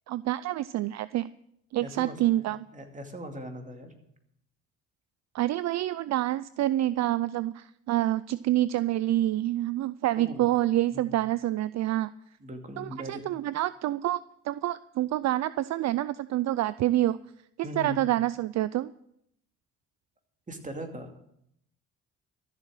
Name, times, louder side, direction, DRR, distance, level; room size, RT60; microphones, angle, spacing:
voice 1, 0.1-1.3 1.7-2.6 5.3-12.1 12.8-17.2 17.6-18.9, right 14 dB, 60° right, 16 dB, 0.4 m, -27 dB
voice 2, 1.8-2.4 2.7-3.9 10.2-10.5 10.9-11.2 12.4-13.2 17.6-18.1 20.5-21.1, equal, 25° right, 4 dB, 2.4 m, -40 dB
13.5 x 7.5 x 7.7 m, 0.75 s
cardioid pair, 90°, 30 cm